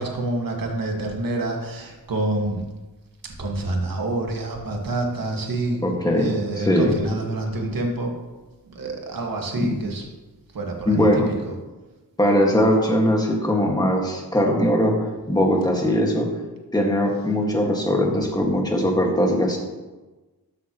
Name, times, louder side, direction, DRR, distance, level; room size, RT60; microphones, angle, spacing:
voice 1, 0.0-2.6 3.4-5.8 6.1-8.1 8.8-10.0 10.5-11.1 11.5-11.6, right 2 dB, 60° right, 1 dB, 1.9 m, -27 dB
voice 2, 5.8-7.0 9.5-9.7 10.9-11.3 12.2-14.9 15.3-16.3 16.7-19.6, equal, 10° left, 0 dB, 1.9 m, -20 dB
13.5 x 9.6 x 3.1 m, 1.2 s
wide cardioid pair, 135°, 38 cm